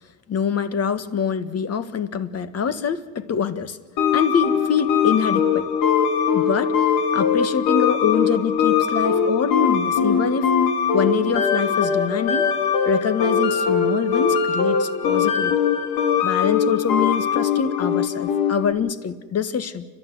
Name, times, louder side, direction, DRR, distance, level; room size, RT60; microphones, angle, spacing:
voice 1, 0.3-3.8 4.1-5.7 6.3-6.9 7.1-10.5 10.9-12.5 12.8-15.5 16.2-19.9, left 7 dB, 45° left, 12 dB, 1.6 m, -25 dB
sound 1, 4.0-18.7, left 6 dB, 90° left, 2.5 m, -21 dB
29.5 x 12.0 x 9.6 m, 1.4 s
cardioid pair, 100°, 35 cm